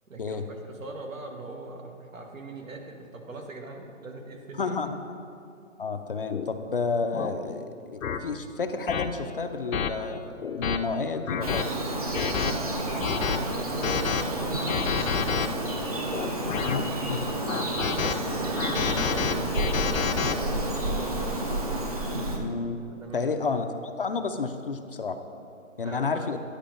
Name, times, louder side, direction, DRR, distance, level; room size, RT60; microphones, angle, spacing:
voice 1, 0.1-4.8 13.0-15.5 17.8-20.7 22.9-23.4 25.8-26.4, right 2 dB, 80° right, 3 dB, 1.5 m, -42 dB
voice 2, 4.6-5.0 5.8-11.7 16.7-16.8 17.1-17.3 22.3-22.8 23.1-25.2 25.8-26.4, left 4 dB, 45° left, 7 dB, 0.4 m, -30 dB
sound 1, 6.3-6.5 7.1-7.3 8.0-8.2 8.9-9.1 9.7-9.9 10.4-10.8 11.3-11.6 12.1-12.5 13.0-13.4 13.8-14.2 14.7-15.5 16.1-16.8 17.5-18.1 18.6-20.3, left 7 dB, 80° left, 0.7 m, -28 dB
Bird vocalization bird call bird song, 11.4-22.4, right 1 dB, 30° right, 0.5 m, -30 dB
10.0 x 4.9 x 5.1 m, 2.5 s
hypercardioid pair, 160°, 40 cm